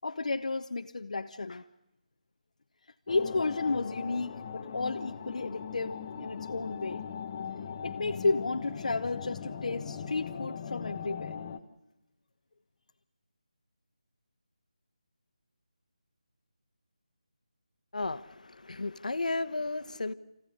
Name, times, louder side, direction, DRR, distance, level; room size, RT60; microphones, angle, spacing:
voice 1, 0.0-1.6 3.1-7.1 7.8-11.4, left 3 dB, 60° left, 0.8 m, -32 dB
sound 1, 3.1-11.6, left 7 dB, 25° left, 1.0 m, -40 dB
voice 2, 17.9-20.1, left 3 dB, 75° left, 1.2 m, -34 dB
24.5 x 15.5 x 10.0 m
figure-of-eight pair, 170°, 4 cm